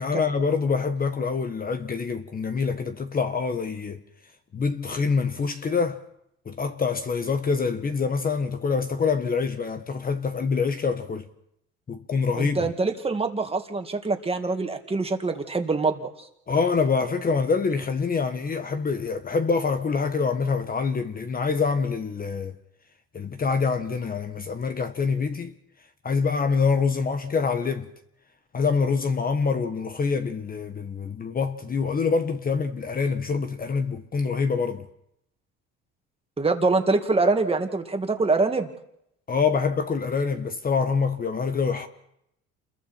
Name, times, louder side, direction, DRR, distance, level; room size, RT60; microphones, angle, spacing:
voice 1, 0.0-4.0 4.5-6.0 6.4-11.2 11.9-12.7 16.5-22.5 23.1-25.5 26.0-27.9 28.5-34.9 39.3-41.9, left 5 dB, 30° left, 1.4 m, -25 dB
voice 2, 12.4-16.0 36.4-38.7, right 3 dB, 20° right, 2.3 m, -24 dB
28.5 x 22.0 x 4.5 m
cardioid pair, 110°, 31 cm